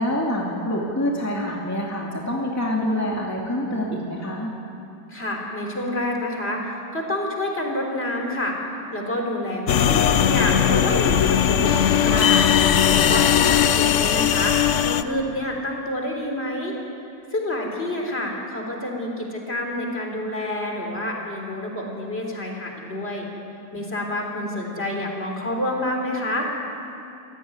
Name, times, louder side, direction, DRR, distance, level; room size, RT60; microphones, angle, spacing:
voice 1, 0.0-4.5, left 1 dB, 10° left, -2 dB, 2.4 m, -26 dB
voice 2, 5.1-8.6 8.9-12.5 12.9-14.6 14.8-16.8 17.3-23.3 23.7-26.5, left 1 dB, 35° left, 1 dB, 4.1 m, -28 dB
sound 1, 9.7-15.0, left 9 dB, 55° left, 0.9 m, -18 dB
27.0 x 17.0 x 9.7 m, 2.7 s
omnidirectional pair, 1.8 m